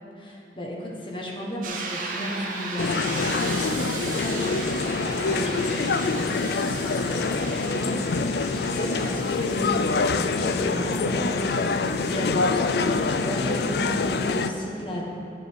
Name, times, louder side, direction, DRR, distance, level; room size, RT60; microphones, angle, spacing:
voice 1, 0.2-15.1, equal, 30° left, -3 dB, 1.5 m, -34 dB
sound 1, 1.6-13.3, right 3 dB, 45° right, 1.0 m, -37 dB
sound 2, 2.8-14.5, left 4 dB, 60° left, 0.4 m, -25 dB
11.0 x 7.7 x 4.7 m, 2.8 s
head